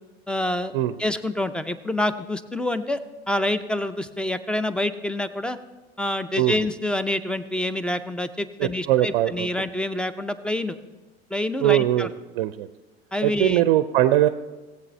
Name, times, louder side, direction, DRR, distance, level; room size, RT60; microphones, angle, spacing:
voice 1, 0.3-0.7 1.0-3.0 3.3-5.6 6.0-10.8 11.3-12.1 13.1-13.6, left 1 dB, 5° left, 13 dB, 0.5 m, -27 dB
voice 2, 8.6-9.5 11.6-12.1 12.3-12.7 13.2-14.3, right 14 dB, 55° right, 12 dB, 0.5 m, -21 dB
18.5 x 8.0 x 3.2 m, 1.2 s
figure-of-eight pair, 75°, 30 cm